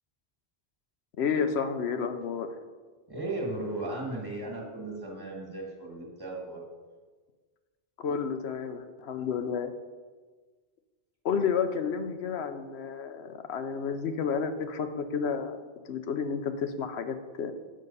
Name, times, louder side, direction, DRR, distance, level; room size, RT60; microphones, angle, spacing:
voice 1, 1.2-2.5 8.0-9.7 11.2-15.6 15.9-17.5, left 6 dB, 75° left, 8 dB, 0.9 m, -31 dB
voice 2, 3.1-6.6, right 2 dB, 20° right, -2 dB, 1.9 m, -36 dB
7.6 x 6.5 x 5.5 m, 1.4 s
omnidirectional pair, 1.1 m